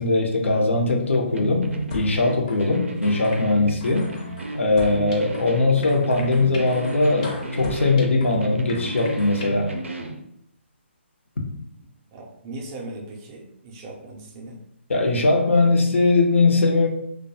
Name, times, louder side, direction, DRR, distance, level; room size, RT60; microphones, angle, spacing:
voice 1, 0.0-4.1 4.5-9.7 14.9-16.9, left 3 dB, 80° left, 1 dB, 0.6 m, -20 dB
sound 1, 1.3-10.2, right 2 dB, 85° right, 0.4 m, -32 dB
sound 2, 1.9-2.1 2.5-2.7 3.0-3.4 3.8-5.5 5.8-8.4 8.7-9.5, left 2 dB, 35° left, 0.5 m, -38 dB
voice 2, 12.1-14.6, right 2 dB, 25° right, 0 dB, 0.4 m, -38 dB
2.3 x 2.2 x 2.7 m, 0.73 s
hypercardioid pair, 150°, 7 cm